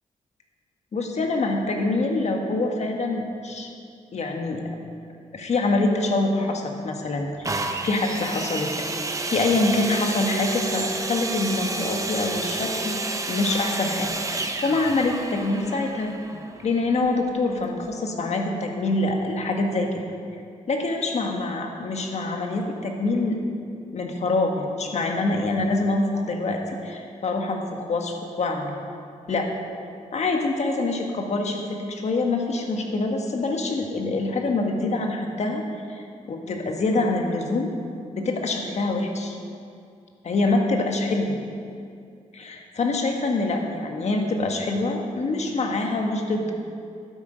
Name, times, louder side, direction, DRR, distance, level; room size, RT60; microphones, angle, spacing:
voice 1, 0.9-3.7 4.1-4.6 5.3-7.5 7.8-8.7 9.3-13.0 13.3-16.1 16.6-20.0 20.7-23.4 23.9-28.8 29.3-29.5 30.1-35.6 35.9-36.0 36.3-37.7 38.1-39.4 40.2-41.3 42.3-46.5, left 2 dB, 55° left, 3 dB, 1.4 m, -25 dB
sound 1, 7.4-17.1 17.9-18.0, right 3 dB, 25° right, 0.8 m, -30 dB
12.0 x 8.2 x 5.1 m, 2.4 s
cardioid pair, 90°, 13 cm